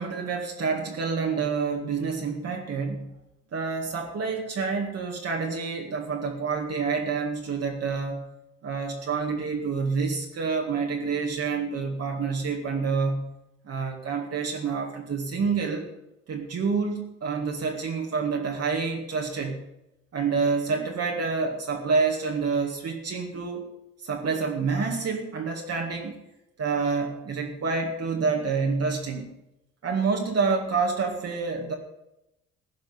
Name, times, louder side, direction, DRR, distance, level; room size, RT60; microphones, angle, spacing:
voice 1, 0.0-3.1 3.5-8.2 8.6-13.3 13.7-15.9 16.3-19.6 20.1-23.6 24.0-26.1 26.6-29.3 29.8-31.7, right 5 dB, 55° right, 0 dB, 2.1 m, -28 dB
15.5 x 5.2 x 9.4 m, 0.89 s
cardioid pair, 90°, 30 cm